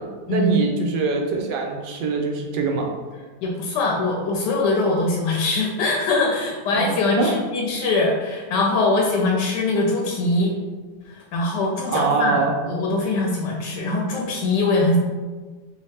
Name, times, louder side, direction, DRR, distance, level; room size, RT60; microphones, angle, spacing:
voice 1, 0.0-2.9 6.7-6.8 7.2-7.4 11.9-12.5, right 4 dB, 90° right, 1 dB, 1.3 m, -23 dB
voice 2, 3.4-10.5 11.1-15.0, left 2 dB, 85° left, -1 dB, 1.2 m, -22 dB
3.1 x 2.7 x 3.2 m, 1.4 s
omnidirectional pair, 1.8 m